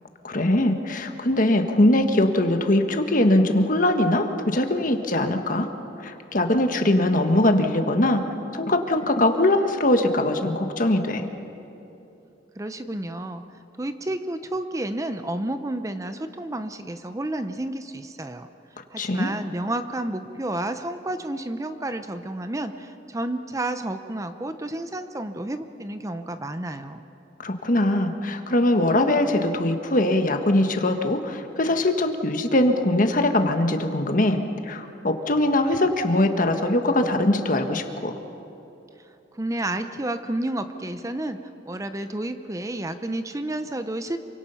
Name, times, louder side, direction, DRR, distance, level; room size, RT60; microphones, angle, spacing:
voice 1, 0.2-5.7 6.0-8.2 8.5-11.3 19.0-19.3 27.4-38.1, left 1 dB, 45° left, 6 dB, 1.5 m, -21 dB
voice 2, 12.6-18.5 18.9-27.0 39.0-44.2, right 1 dB, 20° right, 9 dB, 0.7 m, -31 dB
27.5 x 25.0 x 5.7 m, 2.9 s
head